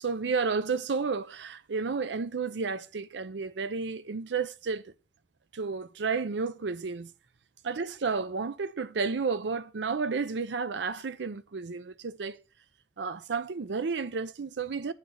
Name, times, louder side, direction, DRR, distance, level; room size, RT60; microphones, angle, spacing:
voice 1, 0.0-4.8 5.5-7.1 7.6-12.4 13.0-14.9, right 5 dB, 80° right, 0.6 m, -31 dB
9.4 x 4.9 x 5.6 m
head